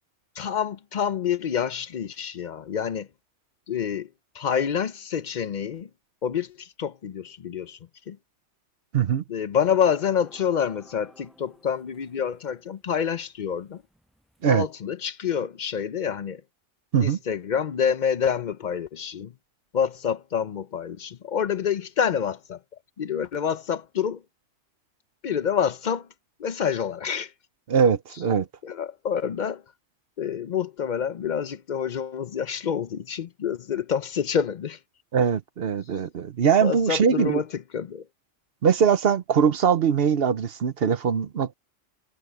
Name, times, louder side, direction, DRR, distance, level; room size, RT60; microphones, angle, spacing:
voice 1, 0.4-3.1 3.7-4.1 4.3-5.9 6.2-7.8 8.1-8.2 9.3-13.8 14.4-16.4 17.0-19.3 19.7-22.6 23.0-24.2 25.2-26.1 26.4-27.3 28.6-29.6 30.2-34.8 36.6-38.0, left 7 dB, 50° left, 0.6 m, -27 dB
voice 2, 8.9-9.2 14.4-14.7 16.9-17.2 27.7-28.5 35.1-37.4 38.6-41.5, right 7 dB, 60° right, 1.0 m, -21 dB
sound 1, 9.6-14.7, equal, ahead, 8.0 m, -55 dB
omnidirectional pair, 1.2 m